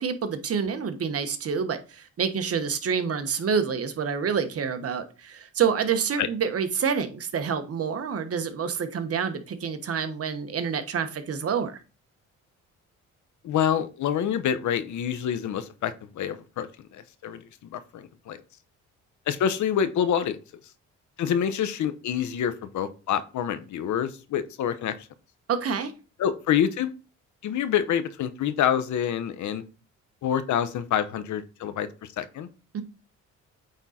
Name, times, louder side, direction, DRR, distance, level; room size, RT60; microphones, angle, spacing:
voice 1, 0.0-11.8 25.5-25.9 32.7-32.8, right 6 dB, 50° right, 1.2 m, -27 dB
voice 2, 13.4-18.4 19.3-20.4 21.2-25.0 26.2-26.9 27.4-29.6 30.2-31.9 32.2-32.5, left 9 dB, 70° left, 0.9 m, -27 dB
8.9 x 3.8 x 4.2 m
cardioid pair, 90°, 30 cm